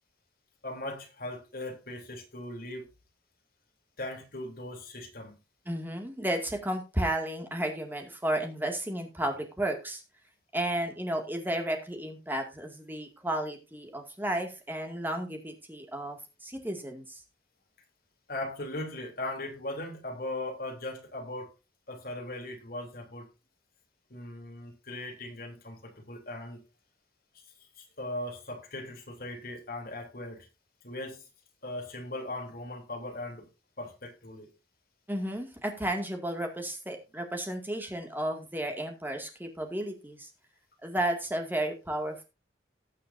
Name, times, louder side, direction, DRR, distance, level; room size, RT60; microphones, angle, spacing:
voice 1, 0.6-2.9 4.0-5.4 18.3-21.5 21.9-23.3 24.1-26.6 27.8-30.5 30.8-31.2 31.6-33.5 33.8-34.5, left 1 dB, 55° left, 2 dB, 3.3 m, -39 dB
voice 2, 5.7-10.0 10.5-17.2 35.1-40.3 40.8-42.2, right 1 dB, 10° right, 4 dB, 2.1 m, -33 dB
18.5 x 6.5 x 2.7 m, 0.27 s
head